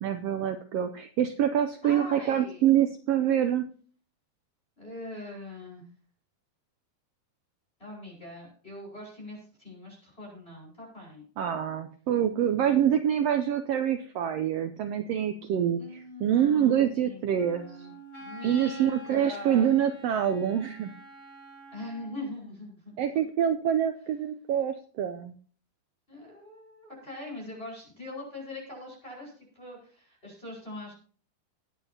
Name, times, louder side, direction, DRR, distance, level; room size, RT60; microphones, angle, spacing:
voice 1, 0.0-3.7 11.4-15.8 16.2-17.9 18.4-20.9 23.0-25.3, right 9 dB, 80° right, 8 dB, 1.4 m, -26 dB
voice 2, 1.8-2.6 4.8-5.8 7.8-11.2 15.5-17.9 18.2-19.7 21.7-22.9 26.1-30.9, left 1 dB, 20° left, -3 dB, 5.3 m, -42 dB
Wind instrument woodwind instrument, 17.4-22.2, right 1 dB, 10° right, 6.4 m, -47 dB
20.0 x 9.0 x 2.8 m, 0.43 s
omnidirectional pair, 3.5 m